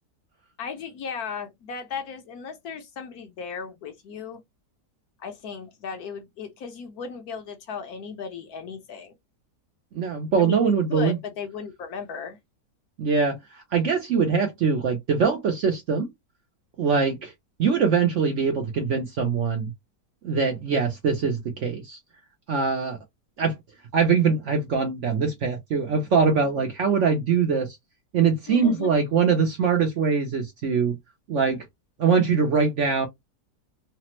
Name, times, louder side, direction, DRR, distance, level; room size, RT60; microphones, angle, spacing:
voice 1, 0.6-4.4 5.2-9.1 10.4-12.4 28.5-28.9, left 6 dB, 65° left, 1.2 m, -36 dB
voice 2, 9.9-11.2 13.0-13.4 13.7-16.1 16.8-17.3 17.6-19.7 20.2-22.0 22.5-23.0 23.4-23.5 23.9-27.8 28.1-31.0 31.3-31.6 32.0-33.1, right 5 dB, 65° right, 0.8 m, -22 dB
3.3 x 2.0 x 2.9 m
omnidirectional pair, 1.8 m